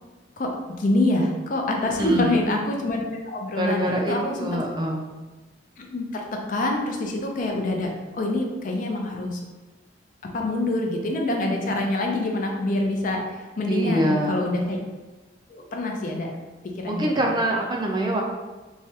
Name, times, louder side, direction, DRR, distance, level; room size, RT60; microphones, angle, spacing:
voice 1, 0.4-4.5 5.8-9.4 10.3-14.8 15.5-16.3 16.6-17.3, left 1 dB, 45° left, 1 dB, 0.4 m, -26 dB
voice 2, 1.8-2.4 3.6-5.1 13.7-14.4 16.8-18.2, right 1 dB, 25° right, 0 dB, 0.3 m, -25 dB
3.1 x 2.3 x 2.8 m, 1.2 s
head